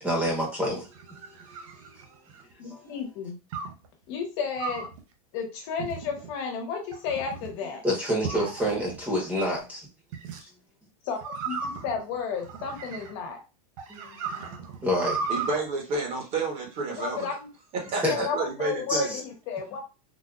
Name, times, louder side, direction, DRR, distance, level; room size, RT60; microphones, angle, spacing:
voice 1, 0.0-0.8 2.6-2.8 7.8-9.9 13.9-15.2 18.0-18.3 18.9-19.2, equal, 5° right, -1 dB, 1.1 m, -28 dB
sound 1, 0.7-2.5 3.5-3.9 4.6-5.0 5.8-6.3 6.9-7.5 8.2-9.0 10.1-10.4 11.2-13.3 13.8-15.6, right 5 dB, 55° right, 0.7 m, -36 dB
voice 2, 2.6-3.4 4.1-4.8 5.3-7.8 11.0-11.2 11.5-13.4 16.9-17.5 18.1-19.8, left 6 dB, 50° left, 3 dB, 1.2 m, -32 dB
voice 3, 15.3-17.3 17.7-19.2, right 3 dB, 35° right, 1 dB, 1.1 m, -30 dB
3.9 x 2.6 x 2.4 m, 0.30 s
supercardioid pair, 155°, 20 cm